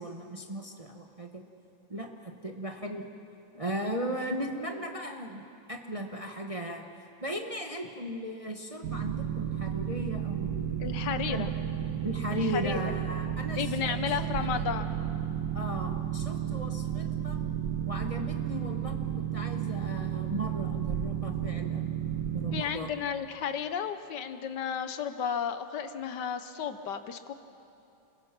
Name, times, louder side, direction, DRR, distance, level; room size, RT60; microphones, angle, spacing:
voice 1, 0.0-1.4 1.9-3.0 3.5-5.4 5.7-6.9 7.2-11.0 11.3-11.5 12.0-14.7 15.5-17.4 17.8-21.9 22.3-22.9, equal, 25° right, 3 dB, 0.9 m, -37 dB
Boat Water vehicle, 8.8-22.6, right 10 dB, 60° right, 1.5 m, -32 dB
voice 2, 10.8-11.5 12.3-12.8 13.5-15.0 22.5-27.3, left 7 dB, 70° left, 10 dB, 1.5 m, -33 dB
29.5 x 22.0 x 6.0 m, 2.8 s
omnidirectional pair, 2.0 m